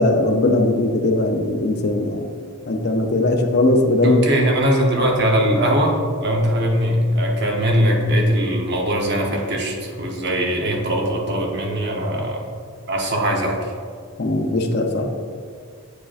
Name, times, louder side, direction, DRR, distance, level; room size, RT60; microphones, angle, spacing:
voice 1, 0.0-2.3 2.7-4.2 14.2-15.1, left 2 dB, 50° left, 3 dB, 0.5 m, -19 dB
voice 2, 4.0-12.5 12.9-13.7, equal, 50° right, 0 dB, 0.9 m, -20 dB
8.3 x 4.9 x 2.5 m, 2.1 s
head